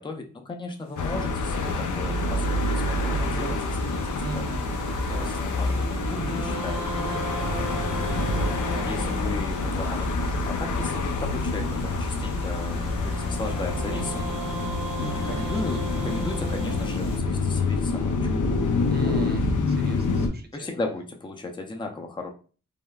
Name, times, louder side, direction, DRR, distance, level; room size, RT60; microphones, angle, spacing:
voice 1, 0.0-4.4 5.1-6.8 8.9-14.2 15.0-18.3 20.5-22.3, left 2 dB, 15° left, 3 dB, 0.4 m, -36 dB
Water, 0.7-17.2, left 2 dB, 50° left, 1.0 m, -47 dB
sound 1, 1.0-20.3, left 3 dB, 70° left, 0.5 m, -27 dB
voice 2, 4.2-5.4 7.0-7.1 7.6-8.9 15.2-15.6 18.9-20.7, right 3 dB, 30° right, 5 dB, 0.6 m, -41 dB
sound 2, 5.8-10.0 12.1-18.3, right 2 dB, 80° right, 0.7 m, -37 dB
3.4 x 2.2 x 2.2 m, 0.38 s
wide cardioid pair, 85°, 31 cm